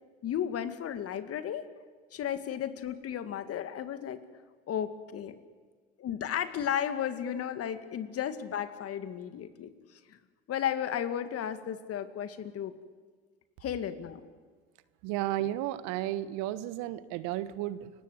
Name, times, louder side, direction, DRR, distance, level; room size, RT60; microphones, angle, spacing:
voice 1, 0.2-1.7 2.1-4.2 4.7-5.4 6.0-9.7 10.1-10.2 10.5-12.8 13.6-14.2, left 9 dB, 50° left, 10 dB, 2.0 m, -34 dB
voice 2, 15.0-17.9, right 14 dB, 65° right, 14 dB, 1.2 m, -33 dB
29.5 x 17.5 x 8.1 m, 1.5 s
hypercardioid pair, 70°, 31 cm